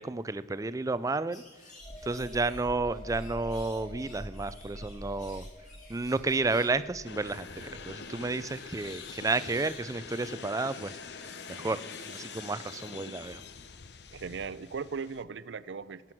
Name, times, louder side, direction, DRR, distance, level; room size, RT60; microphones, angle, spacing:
voice 1, 0.0-1.4 2.0-5.5 5.9-10.9 11.5-11.8 12.1-13.4, right 3 dB, 20° right, 14 dB, 0.4 m, -31 dB
sound 1, 1.3-12.8, left 2 dB, 45° left, 5.0 m, -55 dB
sound 2, 1.8-9.2 9.6-9.8, equal, 30° left, 2.4 m, -45 dB
sound 3, 7.0-15.2, left 5 dB, 65° left, 0.8 m, -45 dB
voice 2, 14.1-16.1, right 5 dB, 85° right, 15 dB, 0.5 m, -38 dB
16.5 x 9.4 x 6.0 m, 1.4 s
head